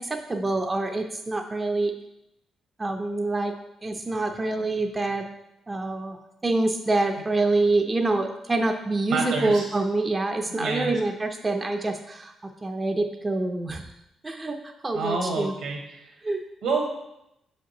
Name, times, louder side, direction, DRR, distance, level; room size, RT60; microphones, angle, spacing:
voice 1, 0.0-1.9 2.8-3.5 3.8-5.3 5.7-6.2 6.4-13.8 14.2-15.5 16.2-16.4, right 2 dB, 25° right, 4 dB, 0.5 m, -26 dB
voice 2, 9.1-9.6 10.6-10.9 14.9-16.1 16.6-16.9, right 3 dB, 85° right, 0 dB, 1.5 m, -28 dB
6.4 x 5.0 x 2.9 m, 0.85 s
cardioid pair, 70°, 0 cm